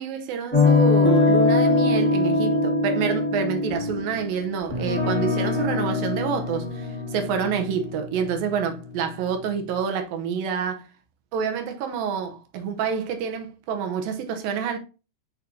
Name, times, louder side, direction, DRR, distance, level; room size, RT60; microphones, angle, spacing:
voice 1, 0.0-10.9 11.3-14.8, right 6 dB, 75° right, 2.5 m, -28 dB
sound 1, 0.5-9.7, left 3 dB, 10° left, 0.6 m, -23 dB
6.7 x 6.0 x 2.7 m
omnidirectional pair, 4.4 m